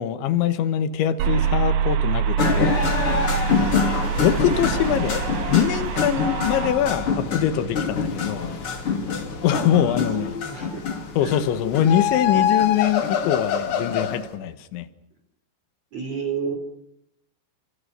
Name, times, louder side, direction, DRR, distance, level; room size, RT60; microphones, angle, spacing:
voice 1, 0.0-2.8 3.6-5.2 5.5-8.5 9.4-10.3 11.2-14.9, left 10 dB, 90° left, 12 dB, 3.7 m, -23 dB
sound 1, 1.2-6.7, right 8 dB, 75° right, 3.6 m, -25 dB
sound 2, 2.4-14.2, left 5 dB, 35° left, 3.2 m, -26 dB
voice 2, 9.5-10.8 11.2-11.4 15.9-16.5, right 5 dB, 40° right, 3 dB, 4.1 m, -31 dB
sound 3, 9.6-10.6 11.6-14.2, left 8 dB, 60° left, 3.4 m, -25 dB
29.0 x 25.5 x 6.7 m, 0.76 s
omnidirectional pair, 5.1 m